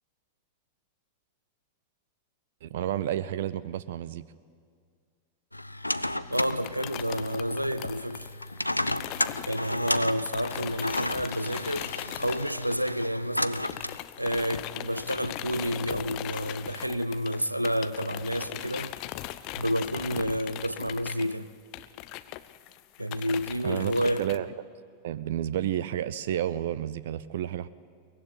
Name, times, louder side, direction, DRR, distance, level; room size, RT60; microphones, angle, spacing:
voice 1, 2.6-4.2 23.6-24.5 25.0-27.7, right 11 dB, 55° right, 0.6 m, -31 dB
sound 1, 5.5-14.0, left 1 dB, 85° left, 0.6 m, -33 dB
sound 2, 6.3-13.2 13.5-24.4, left 15 dB, 40° left, 0.8 m, -39 dB
voice 2, 6.3-8.3 9.5-13.7 14.2-19.0 19.6-21.5 23.0-24.2, equal, 90° right, 0.8 m, -30 dB
23.0 x 21.5 x 9.4 m
figure-of-eight pair, 90°, 0 cm